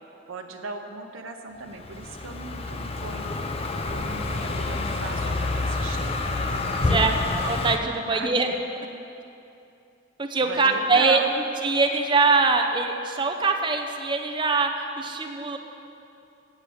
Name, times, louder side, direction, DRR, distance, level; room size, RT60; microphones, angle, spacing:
voice 1, 0.3-3.3 3.9-7.2 8.1-8.3 10.4-11.3, right 4 dB, 90° right, 4 dB, 0.7 m, -37 dB
Car passing by, 1.7-7.8, left 2 dB, 30° left, 0.5 m, -28 dB
voice 2, 6.9-8.5 10.2-11.2 11.6-15.6, right 4 dB, 25° right, 4 dB, 0.6 m, -23 dB
8.0 x 7.1 x 6.9 m, 2.7 s
head